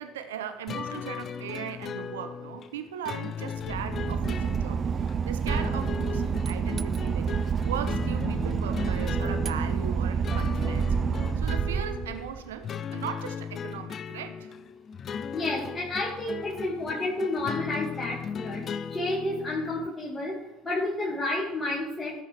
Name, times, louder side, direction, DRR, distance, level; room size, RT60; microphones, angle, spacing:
voice 1, 0.0-4.8 5.2-7.3 7.6-11.0 11.4-14.5, right 8 dB, 80° right, 8 dB, 0.6 m, -38 dB
sound 1, 0.7-19.9, left 7 dB, 45° left, 0.4 m, -37 dB
Boat Water vehicle / Engine, 3.6-12.6, right 6 dB, 40° right, 0.3 m, -28 dB
voice 2, 15.3-18.6 18.9-22.2, left 2 dB, 20° left, -5 dB, 1.9 m, -30 dB
13.5 x 5.4 x 3.3 m, 1.0 s
hypercardioid pair, 70°, 0 cm